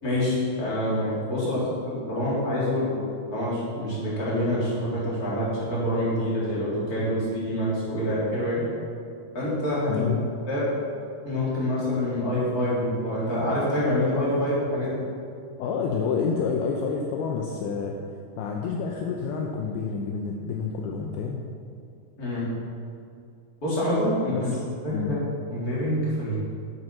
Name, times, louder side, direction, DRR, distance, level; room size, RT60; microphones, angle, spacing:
voice 1, 0.0-3.0 3.3-8.6 9.3-10.0 10.5-10.6 11.2-15.0 22.2-22.5 23.6-24.5 24.8-25.2 25.5-26.4, left 1 dB, 25° left, -8 dB, 3.5 m, -26 dB
voice 2, 9.9-10.2 15.6-21.4 24.3-24.6 24.9-25.1, left 5 dB, 75° left, 1 dB, 2.6 m, -29 dB
11.0 x 8.0 x 6.1 m, 2.4 s
omnidirectional pair, 4.8 m